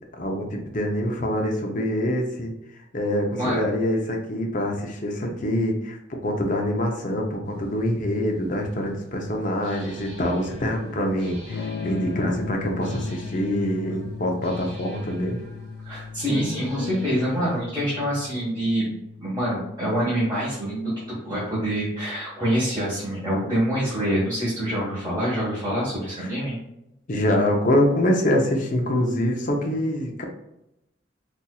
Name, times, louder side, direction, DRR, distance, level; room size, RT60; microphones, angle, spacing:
voice 1, 0.2-15.4 26.2-26.3 27.1-30.2, left 1 dB, 45° left, 2 dB, 0.6 m, -25 dB
voice 2, 3.3-3.6 15.8-18.9 19.2-26.5, equal, 20° right, -9 dB, 1.1 m, -26 dB
sound 1, 8.0-8.1 9.6-17.6, left 1 dB, 40° right, 1.3 m, -42 dB
Electric guitar / Strum, 11.5-21.3, left 5 dB, 85° left, 0.4 m, -37 dB
4.1 x 2.6 x 2.3 m, 0.86 s
head